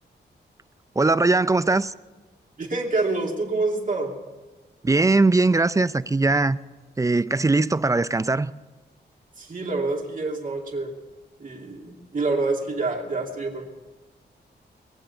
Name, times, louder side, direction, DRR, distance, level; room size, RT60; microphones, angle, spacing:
voice 1, 1.0-1.9 4.8-6.6 7.0-8.5, right 3 dB, 15° right, 0.4 m, -20 dB
voice 2, 2.6-4.2 9.4-10.9 11.4-13.6, right 3 dB, 45° right, 2.7 m, -27 dB
21.5 x 7.8 x 7.0 m
cardioid pair, 80°, 18 cm